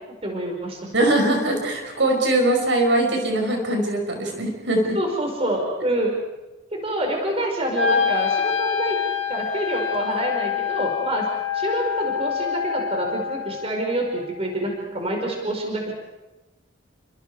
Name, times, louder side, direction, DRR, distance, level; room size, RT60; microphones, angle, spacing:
voice 1, 0.2-0.9 4.9-6.1 6.7-9.0 9.3-11.3 11.5-15.9, right 1 dB, 30° right, 1 dB, 5.0 m, -26 dB
voice 2, 0.9-5.0, right 1 dB, 65° right, 2 dB, 5.6 m, -21 dB
Wind instrument woodwind instrument, 7.7-13.8, left 7 dB, 80° left, 3.6 m, -26 dB
30.0 x 25.5 x 4.8 m, 1.0 s
head